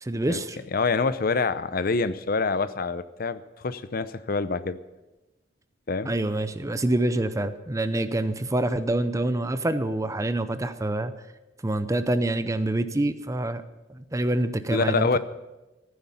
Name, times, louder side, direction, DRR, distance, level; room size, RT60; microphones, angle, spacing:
voice 1, 0.0-0.6 6.1-11.1 11.6-13.6 13.9-15.2, right 1 dB, 20° right, 11 dB, 0.6 m, -26 dB
voice 2, 0.7-4.8 5.9-6.1 14.7-15.2, left 4 dB, 50° left, 14 dB, 0.6 m, -26 dB
15.0 x 9.5 x 7.0 m, 1.1 s
head